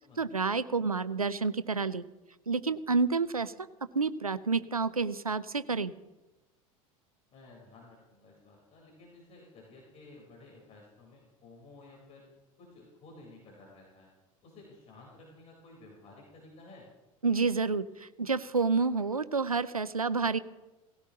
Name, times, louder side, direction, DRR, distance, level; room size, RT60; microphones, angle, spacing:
voice 1, 0.2-2.0 2.5-3.5 3.9-5.9 17.2-20.4, right 4 dB, 90° right, 16 dB, 0.6 m, -29 dB
voice 2, 7.3-12.3 12.6-14.1 14.4-16.9, left 2 dB, 35° left, -1 dB, 4.2 m, -54 dB
18.5 x 16.5 x 3.0 m, 1.1 s
figure-of-eight pair, 75°, 18 cm